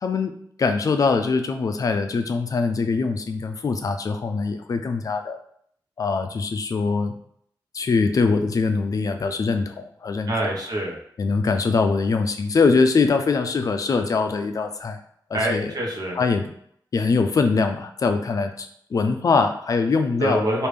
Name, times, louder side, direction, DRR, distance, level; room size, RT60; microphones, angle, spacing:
voice 1, 0.0-0.3 0.6-5.4 6.0-7.2 7.7-10.5 11.2-15.0 15.3-15.7 16.1-16.4 16.9-20.5, left 4 dB, 50° left, 7 dB, 0.4 m, -22 dB
voice 2, 10.3-11.0 15.3-16.2 20.2-20.7, right 1 dB, 55° right, -2 dB, 0.9 m, -25 dB
3.3 x 2.5 x 3.3 m, 0.66 s
wide cardioid pair, 150°, 8 cm